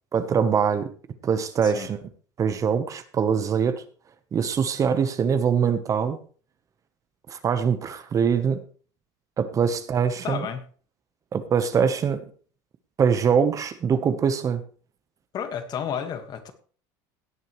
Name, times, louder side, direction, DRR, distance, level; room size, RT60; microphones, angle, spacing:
voice 1, 0.1-0.9 1.2-2.0 2.4-3.8 4.3-6.2 7.3-8.6 9.4-10.5 11.3-12.2 13.0-14.6, right 7 dB, 30° right, 11 dB, 1.1 m, -23 dB
voice 2, 10.2-10.6 15.3-16.5, left 8 dB, 40° left, 9 dB, 1.7 m, -31 dB
17.0 x 9.2 x 3.2 m, 0.41 s
supercardioid pair, 120°, 11 cm